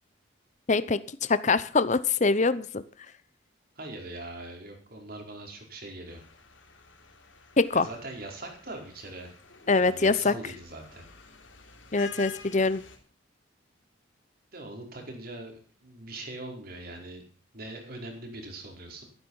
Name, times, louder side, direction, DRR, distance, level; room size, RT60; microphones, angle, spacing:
voice 1, 0.7-2.8 7.6-7.9 9.7-10.3 11.9-12.8, left 3 dB, 40° left, 15 dB, 0.7 m, -24 dB
voice 2, 3.8-6.2 7.7-9.3 9.8-11.0 14.5-17.2 17.5-19.0, right 2 dB, 50° right, 2 dB, 4.5 m, -41 dB
sound 1, 6.1-13.0, left 5 dB, 80° left, 3.3 m, -49 dB
14.0 x 12.5 x 5.5 m, 0.40 s
head